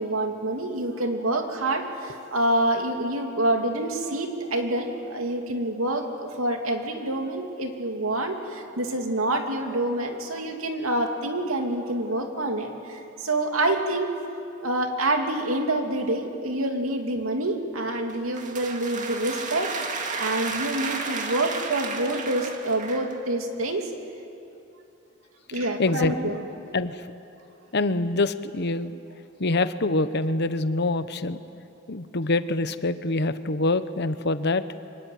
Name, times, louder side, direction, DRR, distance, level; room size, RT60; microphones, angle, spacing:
voice 1, 0.0-14.1 14.6-23.9 25.5-26.4, right 1 dB, 85° right, 3 dB, 2.8 m, -27 dB
sound 1, 18.1-23.2, right 4 dB, 40° right, 2.1 m, -33 dB
voice 2, 25.8-26.4 26.7-27.0 27.7-29.0 29.4-31.4 31.9-34.6, left 2 dB, 55° left, 12 dB, 1.0 m, -25 dB
25.0 x 23.0 x 9.4 m, 2.7 s
head